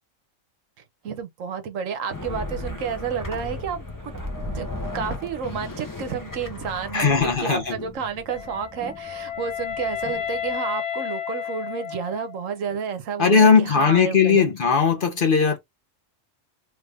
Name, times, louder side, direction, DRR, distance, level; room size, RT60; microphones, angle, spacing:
voice 1, 1.0-4.1 4.5-4.7 4.9-14.4, right 7 dB, 75° right, 1.1 m, -30 dB
sound 1, 2.1-10.5, left 3 dB, 20° left, 0.7 m, -38 dB
sound 2, 2.2-6.8 7.1-7.2, equal, 25° right, 0.4 m, -37 dB
voice 2, 6.9-7.8 13.2-15.6, left 5 dB, 45° left, 0.9 m, -18 dB
Wind instrument woodwind instrument, 8.3-12.5, left 9 dB, 65° left, 0.9 m, -32 dB
3.3 x 2.5 x 3.3 m
omnidirectional pair, 1.4 m